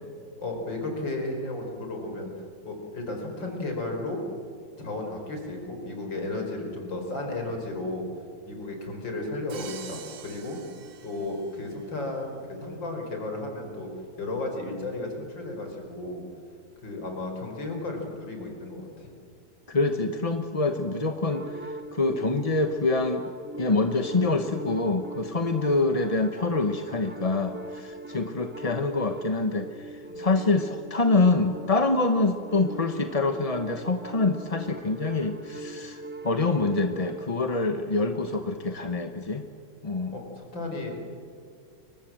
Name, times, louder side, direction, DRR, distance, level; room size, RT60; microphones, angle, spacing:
voice 1, 0.4-2.3 2.6-4.2 4.8-8.1 8.5-10.6 11.0-16.2 16.8-19.1 30.1-30.3 40.1-40.9, left 2 dB, 75° left, 3 dB, 5.7 m, -34 dB
Crash cymbal, 9.5-11.7, right 6 dB, 80° right, 2.3 m, -43 dB
voice 2, 19.7-23.2 23.6-39.5 39.8-40.2, left 3 dB, 25° left, 7 dB, 0.9 m, -26 dB
sound 1, 21.3-37.3, right 2 dB, 10° right, 0.9 m, -40 dB
29.5 x 24.0 x 7.6 m, 2.2 s
omnidirectional pair, 2.0 m